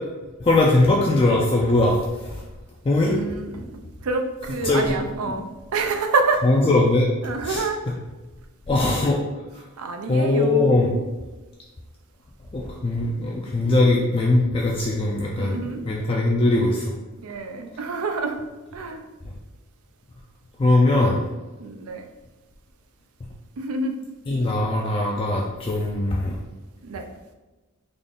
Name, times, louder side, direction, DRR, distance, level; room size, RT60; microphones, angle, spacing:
voice 1, 0.4-2.4 2.8-3.3 4.6-5.0 5.3-5.4 6.4-7.1 7.4-7.7 8.7-9.2 10.1-10.9 12.5-15.6 15.8-16.9 20.6-21.2 24.3-26.4, left 2 dB, 25° left, -2 dB, 0.3 m, -20 dB
voice 2, 3.1-5.4 5.7-6.4 7.2-7.8 9.8-11.1 12.8-14.0 15.3-15.9 17.2-18.4 18.7-19.0 21.6-22.0 23.6-23.9 26.8-27.1, right 3 dB, 80° right, 5 dB, 0.5 m, -28 dB
3.8 x 2.4 x 3.5 m, 1.2 s
head